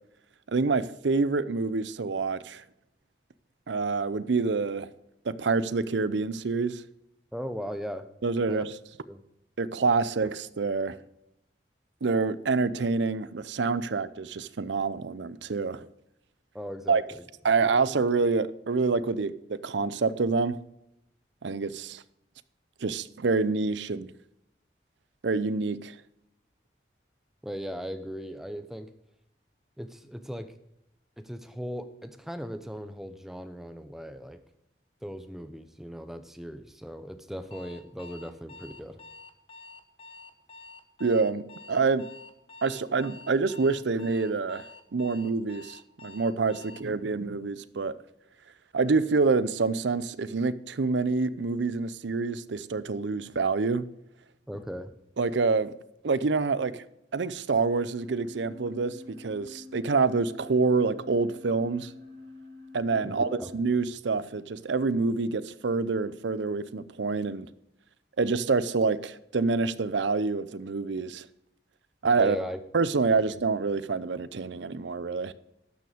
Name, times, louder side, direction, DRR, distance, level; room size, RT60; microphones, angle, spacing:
voice 1, 0.5-2.6 3.7-4.9 5.3-6.8 8.2-8.7 9.6-11.0 12.0-15.9 16.9-17.0 17.4-20.6 21.4-22.0 22.8-24.1 25.2-25.9 41.0-41.4 41.7-42.1 42.6-44.6 44.9-47.9 48.7-53.8 55.2-55.7 56.0-56.8 57.1-61.9 62.7-67.5 68.2-71.3 72.0-72.4 72.7-75.3, right 4 dB, 80° right, 0.6 m, -27 dB
voice 2, 7.3-8.1 8.5-8.6 9.1-9.2 16.5-17.2 27.4-28.9 29.8-30.5 31.2-34.4 35.0-39.0 54.5-54.9 63.0-63.1 63.4-63.5 72.2-72.6, equal, ahead, 0.7 m, -38 dB
Alarm, 37.5-46.9, left 3 dB, 30° left, 0.9 m, -48 dB
sound 1, 57.9-63.6, left 3 dB, 60° right, 1.8 m, -47 dB
12.5 x 7.0 x 5.0 m
head